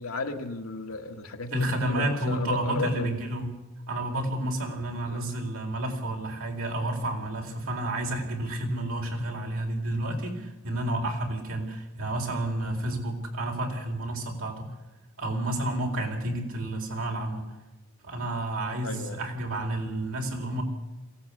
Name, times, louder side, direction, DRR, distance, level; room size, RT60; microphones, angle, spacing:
voice 1, 0.0-3.1 5.0-5.2 18.8-19.2, left 3 dB, 80° left, 5 dB, 1.7 m, -34 dB
voice 2, 1.5-3.5 3.9-14.7 15.2-17.5 18.0-20.6, right 1 dB, 80° right, 2 dB, 4.4 m, -30 dB
23.0 x 16.5 x 8.5 m, 1.0 s
head